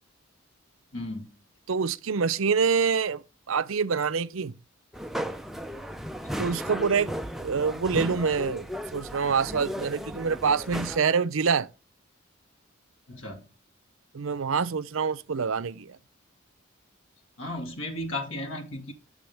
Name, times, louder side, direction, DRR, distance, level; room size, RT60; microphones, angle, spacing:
voice 1, 0.9-1.3 6.3-6.5 13.1-13.5 17.4-18.9, left 1 dB, 70° left, 2.4 m, -35 dB
voice 2, 1.7-3.2 3.5-4.5 6.4-7.1 7.4-8.7 8.9-11.7 14.1-16.0, right 5 dB, 75° right, 0.6 m, -26 dB
sound 1, 4.9-11.0, equal, ahead, 0.5 m, -35 dB
16.5 x 6.2 x 3.4 m
head